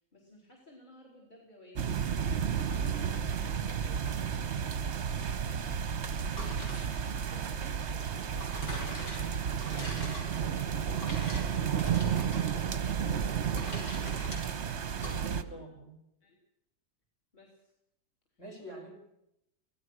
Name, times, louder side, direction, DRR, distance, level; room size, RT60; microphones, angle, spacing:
voice 1, 0.1-5.6 6.3-12.8 13.3-14.6 15.4-15.6 16.2-16.4 17.3-17.7 18.7-18.9, left 1 dB, 25° left, -1 dB, 4.3 m, -57 dB
sound 1, 1.8-15.4, right 8 dB, 45° right, 1.2 m, -32 dB
sound 2, 6.2-15.2, left 1 dB, 75° left, 6.0 m, -45 dB
voice 2, 14.9-16.0 18.4-19.0, right 1 dB, 45° left, 2 dB, 6.5 m, -46 dB
24.0 x 17.0 x 6.4 m, 0.80 s
omnidirectional pair, 1.9 m